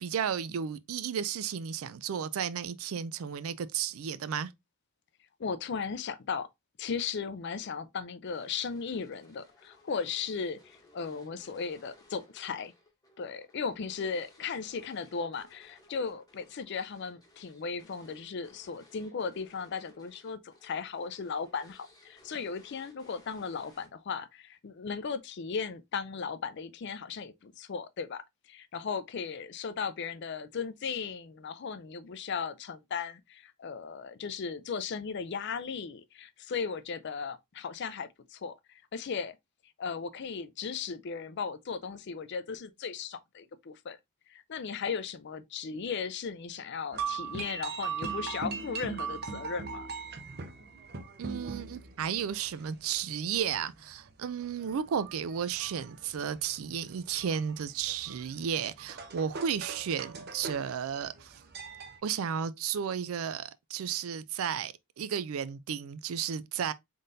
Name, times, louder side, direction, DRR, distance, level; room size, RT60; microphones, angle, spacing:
voice 1, 0.0-4.5 51.2-61.3 62.0-66.7, right 7 dB, 75° right, 0.4 m, -33 dB
voice 2, 5.4-6.5 6.8-12.7 13.2-39.3 39.8-44.0 44.3-49.9, left 5 dB, 55° left, 0.4 m, -36 dB
sound 1, 8.3-24.2, left 2 dB, 15° left, 0.9 m, -61 dB
sound 2, 46.9-62.0, right 5 dB, 45° right, 0.7 m, -41 dB
3.8 x 3.7 x 2.6 m
head